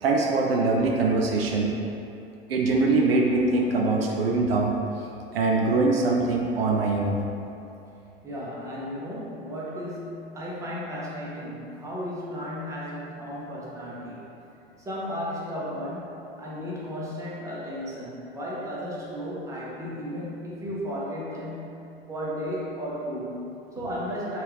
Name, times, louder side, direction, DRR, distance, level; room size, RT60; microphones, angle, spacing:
voice 1, 0.0-1.7 2.5-4.7 5.3-7.2, right 3 dB, 70° right, -1 dB, 0.5 m, -23 dB
voice 2, 8.2-14.3 14.8-21.8 22.1-24.4, equal, 10° right, -6 dB, 0.6 m, -34 dB
3.2 x 2.5 x 3.4 m, 2.8 s
figure-of-eight pair, 80°, 31 cm